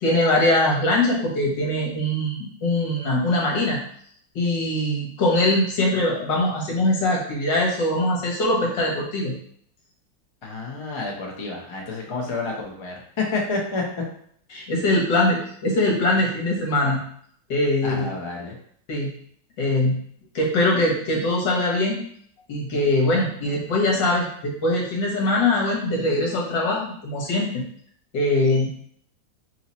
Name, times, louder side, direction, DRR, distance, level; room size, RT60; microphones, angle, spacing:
voice 1, 0.0-3.8 4.3-9.3 14.5-17.0 17.5-18.1 18.9-19.1 19.6-20.0 20.3-22.0 22.5-27.6 28.1-28.7, left 1 dB, 75° left, -3 dB, 1.8 m, -22 dB
voice 2, 10.4-13.8 17.8-18.6, left 3 dB, 45° left, -2 dB, 0.3 m, -29 dB
3.6 x 2.9 x 4.1 m, 0.63 s
omnidirectional pair, 2.0 m